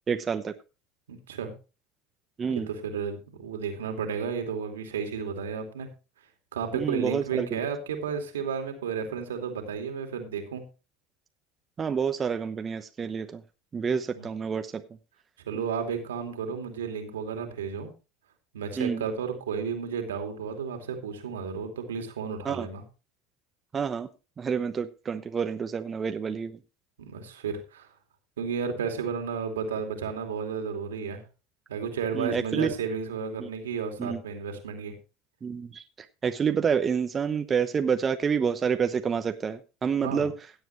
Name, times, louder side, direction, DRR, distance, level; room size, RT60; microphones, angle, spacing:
voice 1, 0.1-0.5 2.4-2.7 6.7-7.6 11.8-13.4 13.7-14.8 15.5-15.6 18.8-19.0 22.4-22.7 23.7-24.1 24.4-26.6 32.1-32.7 33.4-33.5 34.0-34.2 35.4-35.8 36.2-40.3, right 6 dB, 30° right, 8 dB, 0.9 m, -28 dB
voice 2, 1.1-1.5 2.5-5.9 6.5-10.6 14.1-14.3 15.5-17.9 18.5-22.8 27.0-27.9 28.4-31.2 31.7-35.0 40.0-40.3, right 6 dB, 85° right, 4 dB, 2.5 m, -32 dB
16.5 x 7.9 x 3.2 m, 0.31 s
hypercardioid pair, 85°, 0 cm